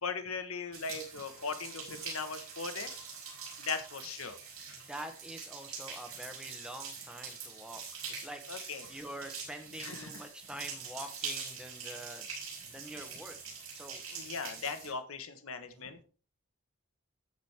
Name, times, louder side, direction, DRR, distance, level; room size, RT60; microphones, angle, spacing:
voice 1, 0.0-2.9 3.6-4.4 8.5-8.9 9.8-10.2 14.1-16.0, left 5 dB, 75° left, 9 dB, 1.4 m, -39 dB
sound 1, 0.7-14.9, right 5 dB, 75° right, 6.0 m, -44 dB
voice 2, 4.7-8.4 8.9-12.3 12.7-13.4 13.7-14.0 14.6-14.7 15.7-15.9, right 1 dB, 5° right, 5 dB, 1.2 m, -46 dB
14.0 x 5.1 x 4.4 m, 0.39 s
head